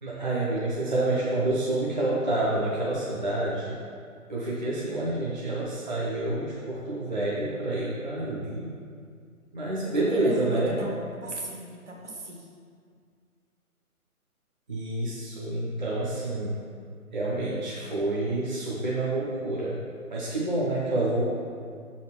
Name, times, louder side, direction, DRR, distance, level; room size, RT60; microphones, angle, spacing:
voice 1, 0.0-3.8 4.3-8.8 9.5-10.9 14.7-16.6 17.1-19.8 20.1-21.3, right 2 dB, 30° right, -7 dB, 0.7 m, -28 dB
voice 2, 9.8-12.5, right 1 dB, 50° right, -2 dB, 1.4 m, -37 dB
6.5 x 4.1 x 5.8 m, 2.2 s
figure-of-eight pair, 155°, 44 cm